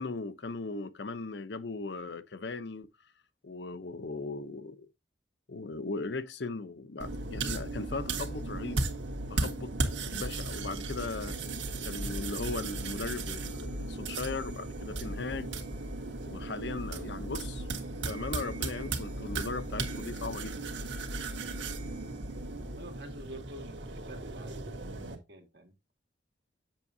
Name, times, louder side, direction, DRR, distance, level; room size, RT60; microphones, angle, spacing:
voice 1, 0.0-2.9 3.4-4.9 5.5-8.8 9.3-9.7 10.0-11.4 11.8-15.5 16.2-17.7 17.9-20.5, left 3 dB, 70° left, 0.7 m, -38 dB
sound 1, 7.0-25.2, right 2 dB, 80° right, 1.6 m, -36 dB
voice 2, 22.6-25.7, right 1 dB, 60° right, 2.2 m, -48 dB
7.4 x 7.0 x 2.7 m
head